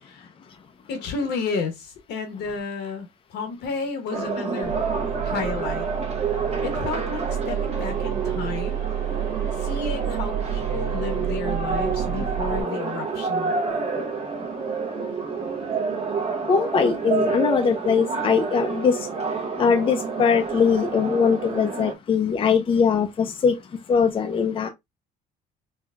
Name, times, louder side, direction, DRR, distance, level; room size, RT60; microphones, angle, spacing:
voice 1, 0.9-4.8 5.2-5.9 6.6-8.8 9.6-13.5, left 4 dB, 75° left, 1.1 m, -31 dB
sound 1, 4.1-21.9, right 5 dB, 40° right, 0.9 m, -29 dB
sound 2, 4.6-12.6, right 10 dB, 75° right, 1.6 m, -30 dB
voice 2, 16.5-19.1 19.6-23.6 23.9-24.7, left 6 dB, 30° left, 0.5 m, -21 dB
4.5 x 2.3 x 2.3 m
cardioid pair, 110°, 17 cm